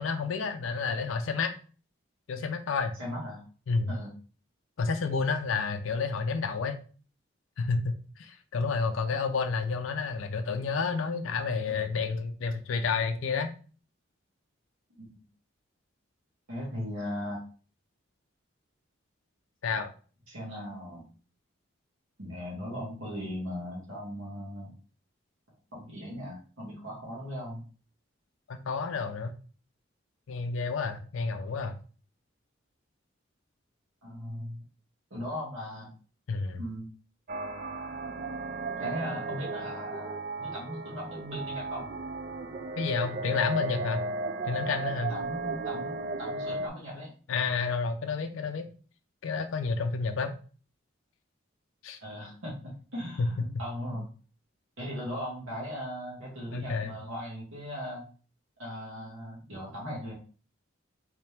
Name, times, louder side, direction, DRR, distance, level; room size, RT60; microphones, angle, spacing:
voice 1, 0.0-1.5 2.3-2.9 3.7-3.9 4.8-6.8 7.6-13.5 19.6-19.9 28.5-29.3 30.3-31.7 36.3-36.6 42.8-44.0 44.5-45.1 47.3-48.6 49.2-50.4 51.8-52.0 53.2-53.3 56.5-56.9, left 4 dB, 85° left, 7 dB, 0.4 m, -30 dB
voice 2, 3.0-3.4 3.9-4.1 15.0-15.1 16.5-17.4 20.3-21.0 22.2-24.7 25.7-27.6 34.0-34.6 35.1-35.9 36.6-36.9 38.8-41.9 45.1-47.1 52.0-54.1 54.8-58.0 58.6-60.1, equal, 90° right, -5 dB, 1.6 m, -38 dB
sound 1, 37.3-46.7, right 2 dB, 45° right, 0.3 m, -35 dB
3.2 x 2.9 x 3.3 m, 0.38 s
head